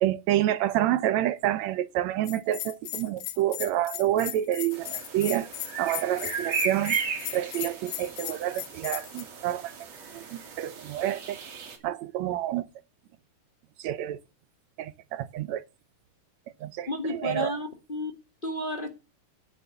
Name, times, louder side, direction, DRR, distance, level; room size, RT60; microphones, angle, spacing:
voice 1, 0.0-5.5 5.8-7.0 7.3-9.7 10.1-10.2 10.6-11.4 11.8-12.7 13.8-14.2 14.8-15.6 16.6-17.5, right 12 dB, 75° right, 1.7 m, -28 dB
Bell, 2.2-9.2, left 13 dB, 75° left, 2.5 m, -36 dB
sound 1, 4.7-11.8, right 6 dB, 55° right, 3.5 m, -36 dB
voice 2, 16.9-18.1 18.4-18.9, left 2 dB, 55° left, 0.5 m, -32 dB
9.2 x 8.8 x 6.9 m
omnidirectional pair, 3.7 m